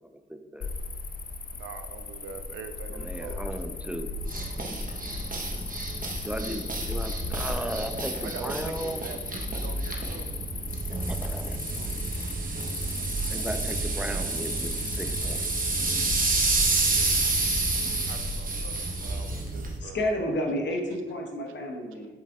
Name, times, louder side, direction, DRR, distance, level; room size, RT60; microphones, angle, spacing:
voice 1, 0.0-0.7 2.9-4.1 6.2-9.0 11.1-11.6 13.3-15.5, equal, 5° right, 6 dB, 0.7 m, -36 dB
Cricket, 0.6-19.5, left 4 dB, 45° left, 0.6 m, -37 dB
voice 2, 1.5-3.4 8.2-10.3 18.1-20.1, right 6 dB, 90° right, 7 dB, 0.5 m, -43 dB
sound 1, 4.2-19.8, right 3 dB, 45° right, 1.2 m, -30 dB
voice 3, 19.8-22.1, left 1 dB, 65° left, 1 dB, 1.2 m, -30 dB
7.7 x 5.0 x 2.5 m, 1.3 s
supercardioid pair, 45°, 20 cm